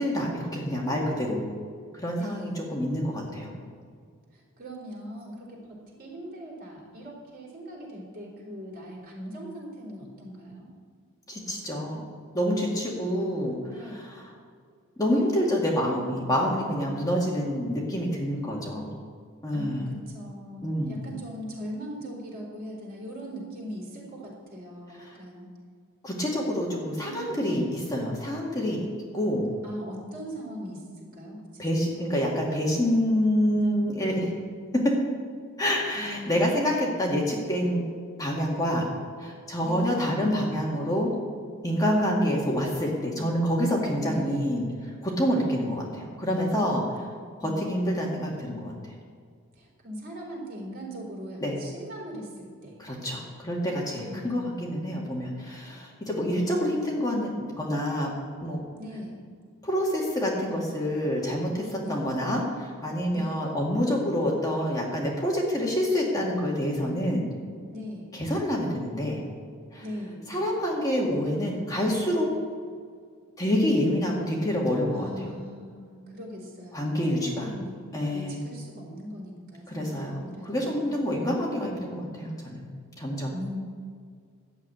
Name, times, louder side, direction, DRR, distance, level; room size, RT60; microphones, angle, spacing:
voice 1, 0.0-1.4 1.9-3.5 11.3-12.1 12.3-13.6 14.2-14.3 15.0-18.9 19.4-19.9 20.6-21.0 25.0-25.2 26.0-29.5 31.6-34.2 34.7-35.0 35.6-37.8 38.2-38.9 39.2-41.1 41.6-46.8 47.4-48.7 51.4-51.6 52.8-58.1 58.4-58.6 59.6-67.3 68.1-69.2 69.7-69.8 70.3-72.3 73.4-75.3 76.7-77.5 77.9-78.4 79.7-82.6 83.0-83.3, equal, 15° left, -3 dB, 1.9 m, -27 dB
voice 2, 2.1-2.5 4.3-10.7 12.6-13.0 13.7-14.0 19.5-25.4 27.0-27.6 29.6-32.1 34.1-34.2 35.9-36.5 39.6-40.1 42.1-42.4 43.1-43.3 44.0-44.5 46.3-46.6 47.4-48.1 49.6-52.8 54.0-54.5 58.8-59.2 61.8-62.1 63.1-63.4 67.7-68.1 69.8-70.3 74.9-81.0 83.3-83.6, equal, 45° right, -3 dB, 3.9 m, -40 dB
12.0 x 7.5 x 9.0 m, 2.1 s
head